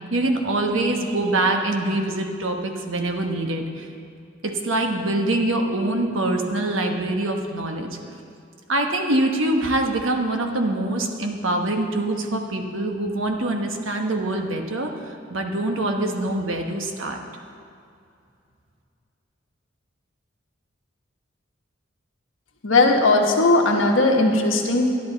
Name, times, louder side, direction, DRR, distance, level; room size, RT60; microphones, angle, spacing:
voice 1, 0.1-3.9 4.4-7.9 8.7-14.9 15.3-17.2, right 2 dB, 85° right, 3 dB, 1.2 m, -24 dB
voice 2, 22.6-24.9, left 2 dB, 80° left, 1 dB, 1.3 m, -18 dB
13.0 x 10.5 x 4.0 m, 2.5 s
head